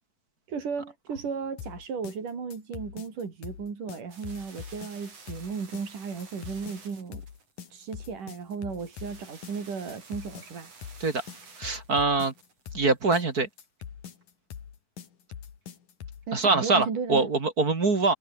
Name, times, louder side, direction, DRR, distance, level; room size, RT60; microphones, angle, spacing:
voice 1, 0.5-7.2 7.7-10.7 16.3-17.3, right 5 dB, 80° right, 6.0 m, -35 dB
sound 1, 1.6-16.3, left 8 dB, 85° left, 4.2 m, -43 dB
sound 2, 4.1-13.5, right 4 dB, 50° right, 6.3 m, -52 dB
voice 2, 11.6-12.3 12.7-13.5 16.3-18.1, right 3 dB, 30° right, 2.7 m, -24 dB
omnidirectional pair, 3.6 m